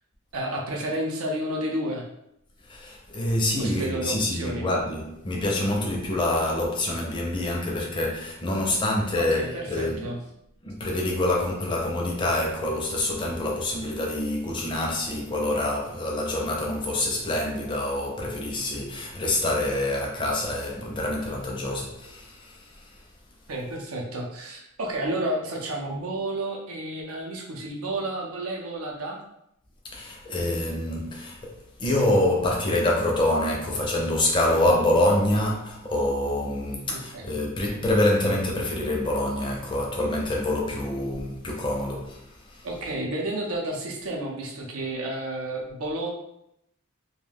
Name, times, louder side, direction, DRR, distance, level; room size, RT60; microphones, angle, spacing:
voice 1, 0.3-2.0 3.6-4.7 9.2-10.2 23.5-29.2 34.4-34.5 36.8-37.3 42.6-46.1, right 1 dB, 80° right, 0.6 m, -31 dB
voice 2, 2.7-10.1 10.6-22.8 29.9-31.5 31.8-42.3 42.5-42.9, left 1 dB, 20° left, 0.5 m, -26 dB
2.3 x 2.2 x 3.3 m
head